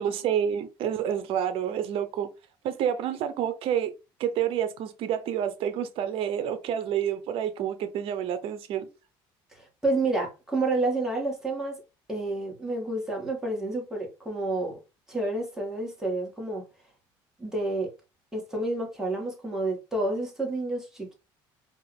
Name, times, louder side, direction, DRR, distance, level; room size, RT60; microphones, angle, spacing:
voice 1, 0.0-2.3 2.6-3.9 4.2-8.9, right 9 dB, 65° right, 0.8 m, -28 dB
voice 2, 9.5-11.8 12.1-14.8 15.1-16.6 17.4-17.9 18.3-21.1, right 2 dB, 5° right, 2.3 m, -29 dB
4.5 x 2.9 x 3.5 m
supercardioid pair, 95°, 10 cm